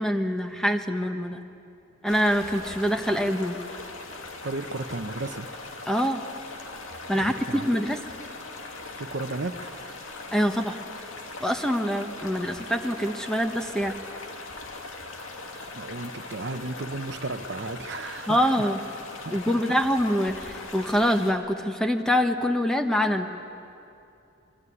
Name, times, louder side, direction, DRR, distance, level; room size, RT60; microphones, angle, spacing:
voice 1, 0.0-1.4 2.0-3.6 5.9-6.2 7.1-8.0 10.3-10.8 11.4-14.0 18.3-18.8 19.3-23.3, equal, 5° left, 5 dB, 1.2 m, -25 dB
sound 1, 2.1-21.3, left 3 dB, 85° left, 2.4 m, -40 dB
voice 2, 4.4-5.5 7.1-7.8 9.0-9.6 15.7-18.7 19.2-19.4, right 2 dB, 55° right, 10 dB, 0.8 m, -34 dB
23.5 x 23.5 x 9.8 m, 2.7 s
head